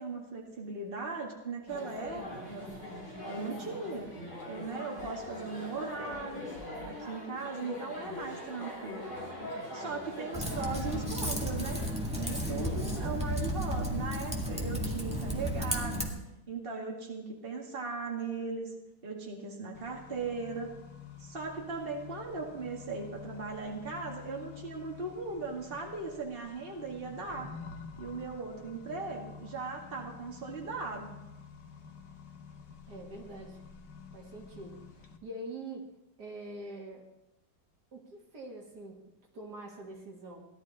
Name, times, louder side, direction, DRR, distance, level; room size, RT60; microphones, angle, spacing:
voice 1, 0.0-2.2 2.5-2.7 3.3-4.1 4.5-6.4 6.9-9.1 9.7-11.8 12.2-16.0 16.5-18.7 19.0-20.7 21.2-27.5 28.0-31.1, right 4 dB, 30° right, -1 dB, 2.2 m, -38 dB
sound 1, 1.7-13.1, left 1 dB, 40° left, 5.0 m, -42 dB
Typing, 10.3-16.1, equal, 5° right, 1.8 m, -33 dB
Accelerating revving vroom, 19.7-35.2, left 6 dB, 70° left, 1.7 m, -49 dB
voice 2, 32.9-33.6 34.1-35.9 36.2-37.1 37.9-39.0 39.3-40.5, right 2 dB, 65° right, 0 dB, 2.6 m, -44 dB
17.5 x 12.0 x 4.2 m, 0.94 s
omnidirectional pair, 1.9 m